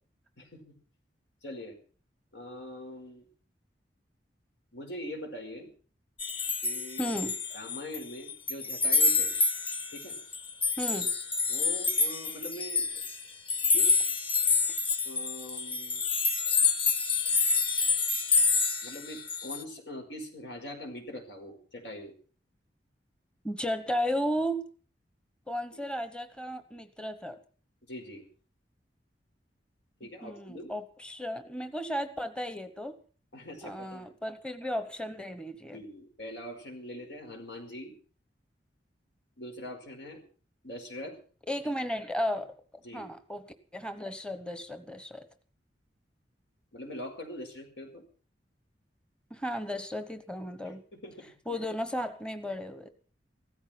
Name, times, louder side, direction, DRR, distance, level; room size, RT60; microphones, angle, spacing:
voice 1, 1.4-1.8 2.3-3.3 4.7-5.7 6.6-7.1 7.5-9.3 9.9-10.2 11.5-12.9 13.7-14.0 15.1-16.0 18.8-22.1 25.7-25.8 27.9-28.2 30.0-30.7 33.3-34.1 35.7-37.9 39.4-40.2 40.6-41.2 42.8-43.1 46.7-48.0 50.6-51.1 51.5-51.6, left 1 dB, 85° left, 3 dB, 5.1 m, -42 dB
sound 1, 6.2-8.0 8.3-19.6, left 4 dB, 30° left, 1.5 m, -27 dB
voice 2, 7.0-7.4 10.8-11.1 23.4-24.7 25.5-27.4 30.2-33.0 33.6-35.8 41.5-42.5 42.9-43.5 43.7-45.3 49.3-50.8 51.5-52.9, equal, 5° left, 10 dB, 1.0 m, -34 dB
16.0 x 14.0 x 5.9 m, 0.42 s
head